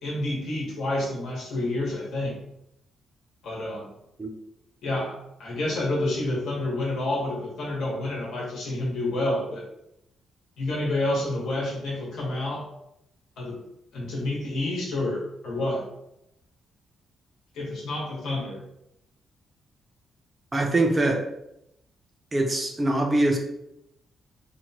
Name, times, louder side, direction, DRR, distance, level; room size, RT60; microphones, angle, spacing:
voice 1, 0.0-2.4 3.4-3.9 4.8-9.7 10.6-12.7 13.4-13.6 13.9-15.9 17.5-18.6, left 1 dB, 85° left, -4 dB, 1.1 m, -29 dB
voice 2, 20.5-21.2 22.3-23.4, right 2 dB, 20° right, 2 dB, 0.4 m, -23 dB
3.0 x 2.1 x 2.7 m, 0.80 s
cardioid pair, 155°, 0 cm